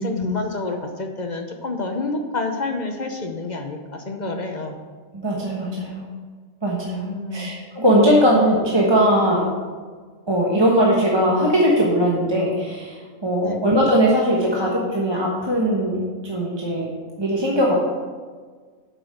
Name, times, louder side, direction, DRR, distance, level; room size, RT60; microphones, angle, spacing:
voice 1, 0.0-4.7 7.0-7.5 13.4-13.7, left 2 dB, 40° left, 4 dB, 0.8 m, -28 dB
voice 2, 5.1-6.0 6.6-7.0 7.3-9.4 10.3-16.9 17.2-17.7, equal, 20° right, -3 dB, 1.1 m, -20 dB
7.7 x 6.0 x 6.5 m, 1.5 s
omnidirectional pair, 1.5 m